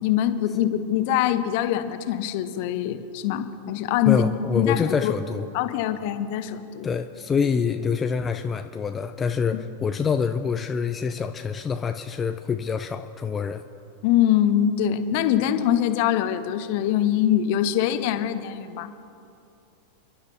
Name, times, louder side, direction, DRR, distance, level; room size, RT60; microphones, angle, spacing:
voice 1, 0.0-4.2 4.5-5.1 5.5-6.9 9.5-9.6 14.0-18.9, left 11 dB, 50° left, 10 dB, 0.9 m, -23 dB
voice 2, 4.1-5.5 6.8-13.6, left 6 dB, 20° left, 7 dB, 0.5 m, -26 dB
29.5 x 11.5 x 2.8 m, 2.5 s
figure-of-eight pair, 90°, 0 cm